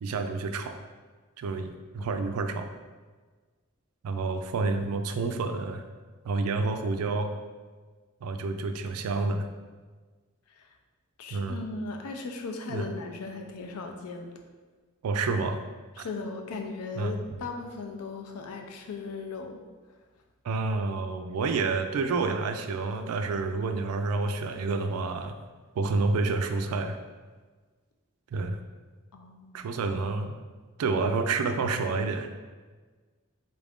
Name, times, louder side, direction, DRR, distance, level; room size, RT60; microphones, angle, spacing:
voice 1, 0.0-0.8 1.4-2.7 4.0-5.8 6.2-7.3 8.2-9.5 11.3-11.6 12.7-12.9 15.0-15.6 16.0-16.1 17.0-17.1 20.4-25.4 25.8-27.0 28.3-28.6 29.5-30.3 30.8-32.3, right 3 dB, 80° right, 7 dB, 0.3 m, -29 dB
voice 2, 2.0-2.3 10.6-10.7 11.2-14.3 16.0-19.6 29.1-29.7, left 3 dB, 85° left, 3 dB, 0.5 m, -37 dB
3.6 x 2.5 x 3.4 m, 1.4 s
head